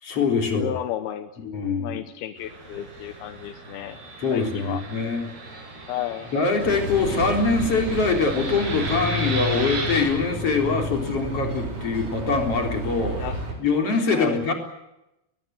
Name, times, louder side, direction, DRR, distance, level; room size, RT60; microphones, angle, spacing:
voice 1, 0.0-0.7 1.5-2.0 4.2-5.2 6.3-13.3 13.6-14.5, left 4 dB, 40° left, 3 dB, 4.6 m, -23 dB
voice 2, 0.5-1.3 1.8-4.0 4.3-4.8 5.9-6.3 13.1-13.4 14.1-14.4, left 12 dB, 80° left, 9 dB, 2.9 m, -32 dB
Fixed-wing aircraft airplane, 2.4-10.0, right 3 dB, 90° right, 8.1 m, -36 dB
sound 1, 6.6-13.5, equal, 45° right, 5.4 m, -31 dB
22.5 x 22.0 x 7.8 m, 0.90 s
omnidirectional pair, 4.5 m